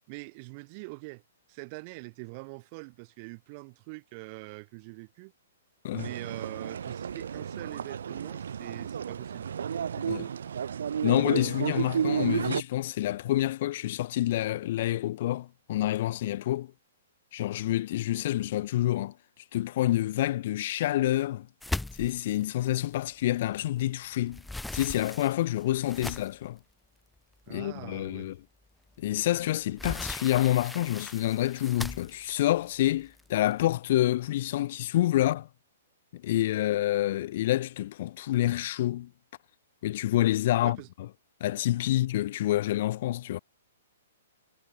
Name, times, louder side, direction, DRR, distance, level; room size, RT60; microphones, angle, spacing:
voice 1, 0.1-1.2 1.5-5.3 5.9-9.5 27.5-28.3 40.6-40.9, right 31 dB, 40° right, 4.6 m, -43 dB
sound 1, 6.0-12.6, right 8 dB, 75° right, 2.1 m, -32 dB
voice 2, 11.0-16.7 17.3-19.1 19.5-21.5 22.0-24.4 24.7-26.6 27.5-28.4 29.0-35.5 36.1-39.1 39.8-40.8 41.4-43.4, left 14 dB, 55° left, 0.5 m, -27 dB
sound 2, 21.6-23.8 24.1-26.5 27.2-27.3 27.7-27.8 29.2-33.5, left 2 dB, 5° left, 0.9 m, -39 dB
hypercardioid pair, 135°, 0 cm